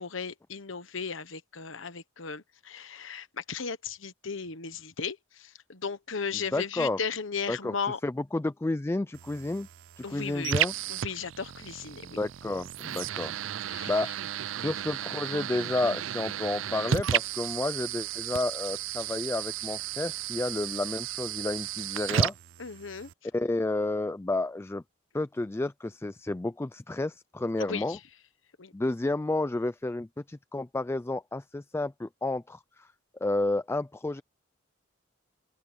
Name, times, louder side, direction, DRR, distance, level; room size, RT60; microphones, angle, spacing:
voice 1, 0.0-8.0 10.0-10.6 10.9-12.2 13.7-13.9 22.6-23.1 27.6-28.0 28.6-28.7, left 5 dB, 70° left, 1.2 m, -36 dB
voice 2, 6.5-7.0 7.5-9.7 10.0-10.7 12.0-13.3 13.9-14.1 14.6-22.3 23.3-24.8 25.1-28.0 28.7-32.9 33.2-34.2, left 2 dB, 15° left, 0.3 m, -31 dB
sound 1, 9.1-23.1, right 9 dB, 70° right, 0.4 m, -33 dB
open air
head